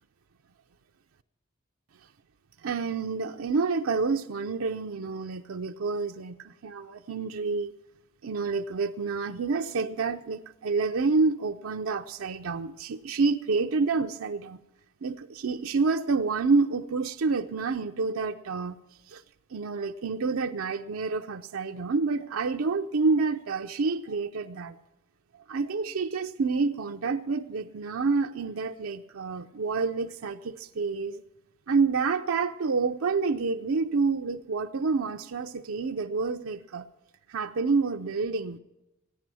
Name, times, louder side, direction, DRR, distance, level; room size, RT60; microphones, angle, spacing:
voice 1, 2.6-7.7 8.2-14.6 15.0-18.8 19.1-19.2 19.5-24.8 25.5-31.2 31.7-36.9 37.3-38.6, right 4 dB, 70° right, 0.5 m, -28 dB
15.5 x 10.0 x 6.1 m
head